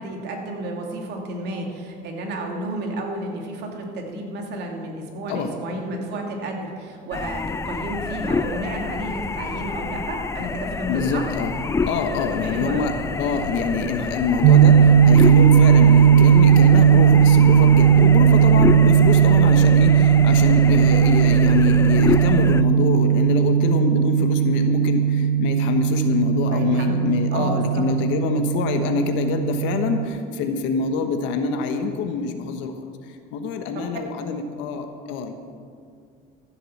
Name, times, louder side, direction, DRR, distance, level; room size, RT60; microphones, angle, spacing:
voice 1, 0.0-11.3 12.4-12.9 26.5-27.8 33.7-33.8, right 1 dB, 60° right, 1 dB, 2.6 m, -32 dB
sound 1, 7.1-22.6, left 4 dB, 15° left, 0.4 m, -28 dB
voice 2, 10.9-11.5 11.8-32.7 33.1-35.3, left 5 dB, 75° left, 6 dB, 1.2 m, -25 dB
sound 2, 14.4-30.0, right 9 dB, 90° right, 0.8 m, -16 dB
14.0 x 7.8 x 7.1 m, 2.2 s
cardioid pair, 125°, 20 cm